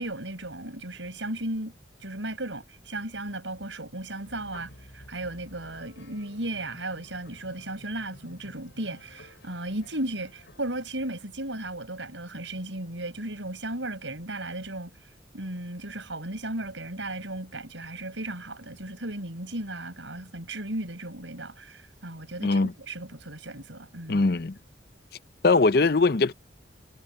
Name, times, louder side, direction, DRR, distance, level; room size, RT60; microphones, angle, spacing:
voice 1, 0.0-1.7 2.0-14.9 15.3-24.3, right 1 dB, 90° right, 6.6 m, -35 dB
sound 1, 4.1-10.8, left 1 dB, 70° left, 6.8 m, -53 dB
voice 2, 22.4-22.7 24.1-24.6 25.4-26.3, left 3 dB, 55° left, 0.6 m, -21 dB
head